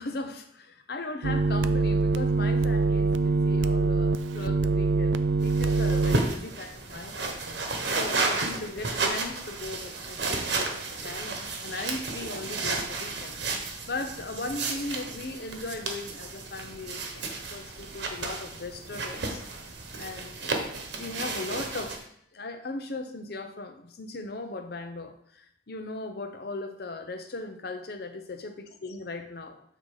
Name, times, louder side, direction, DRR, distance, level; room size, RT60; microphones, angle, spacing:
voice 1, 0.0-7.4 7.9-13.3 13.9-19.4 20.0-20.6 21.0-29.6, left 2 dB, 55° left, 7 dB, 0.8 m, -38 dB
sound 1, 1.2-6.2, right 3 dB, 80° right, 0.4 m, -24 dB
sound 2, 5.4-22.0, right 3 dB, 65° right, 1.1 m, -33 dB
7.8 x 3.9 x 4.9 m, 0.68 s
head